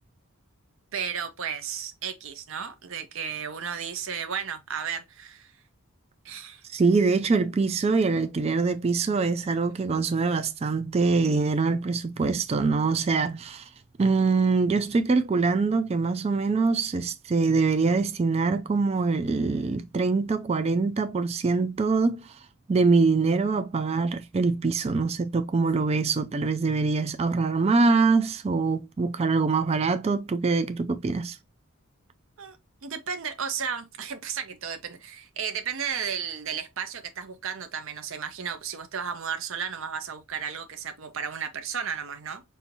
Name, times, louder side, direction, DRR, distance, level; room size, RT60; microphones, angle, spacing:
voice 1, 0.9-5.5 6.2-6.6 32.4-32.6 32.8-42.4, right 7 dB, 60° right, 0.7 m, -33 dB
voice 2, 6.7-13.7 14.0-22.4 22.7-31.4, right 4 dB, 30° right, 0.3 m, -24 dB
5.5 x 2.6 x 2.7 m
head